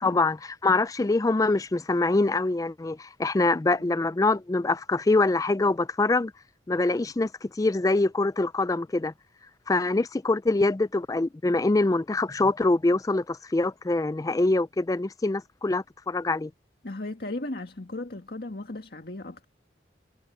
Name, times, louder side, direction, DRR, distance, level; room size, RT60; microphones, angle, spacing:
voice 1, 0.0-6.3 6.7-9.1 9.7-16.5, left 2 dB, 20° left, 0.4 m, -24 dB
voice 2, 16.8-19.5, left 2 dB, 60° left, 1.8 m, -36 dB
head